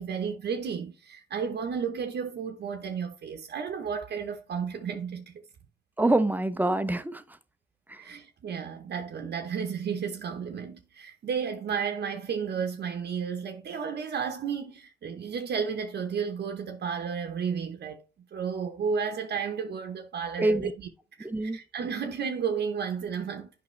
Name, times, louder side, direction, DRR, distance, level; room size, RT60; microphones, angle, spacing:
voice 1, 0.0-5.4 8.0-18.0 18.3-20.9 21.2-23.5, right 6 dB, 55° right, 0.9 m, -32 dB
voice 2, 6.0-7.2 7.9-8.0 20.4-20.7 21.2-21.6, right 2 dB, 10° right, 0.6 m, -25 dB
8.4 x 5.4 x 3.2 m
cardioid pair, 90°, 20 cm